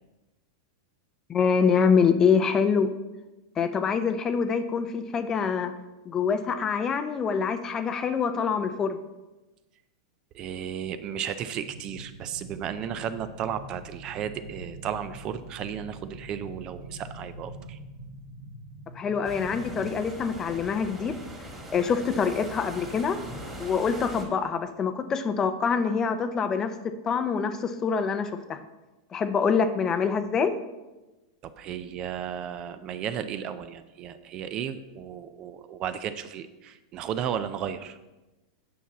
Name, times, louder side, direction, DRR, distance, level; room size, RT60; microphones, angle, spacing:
voice 1, 1.3-2.9 3.6-5.7 6.1-9.0 19.0-21.2 21.7-23.2 23.6-26.7 27.0-28.6 29.1-30.5, left 6 dB, 20° left, 10 dB, 0.5 m, -25 dB
voice 2, 10.3-17.8 31.4-38.0, right 9 dB, 35° right, 11 dB, 0.4 m, -34 dB
sound 1, 11.5-19.8, right 1 dB, 65° right, 1.7 m, -45 dB
sound 2, 19.2-24.2, right 1 dB, 10° right, 1.7 m, -41 dB
8.5 x 5.8 x 4.1 m, 1.1 s
supercardioid pair, 140°, 2 cm